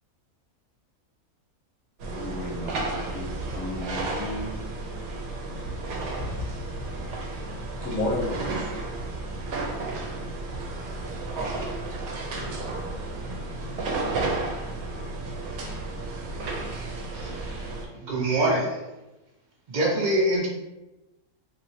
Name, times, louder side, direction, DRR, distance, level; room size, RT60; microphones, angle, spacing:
sound 1, 2.0-17.9, right 2 dB, 80° right, 1.0 m, -32 dB
voice 1, 2.1-4.6, left 1 dB, 20° left, -7 dB, 0.7 m, -36 dB
voice 2, 6.1-6.7 7.3-8.4 8.9-9.0 11.6-11.9 12.4-12.9 13.2-13.3 13.6-14.1 14.9-15.4, left 2 dB, 70° left, -1 dB, 1.1 m, -34 dB
voice 3, 17.1-18.8 19.7-20.5, right 1 dB, 55° right, -2 dB, 0.5 m, -25 dB
2.9 x 2.7 x 2.7 m, 1.0 s
omnidirectional pair, 1.5 m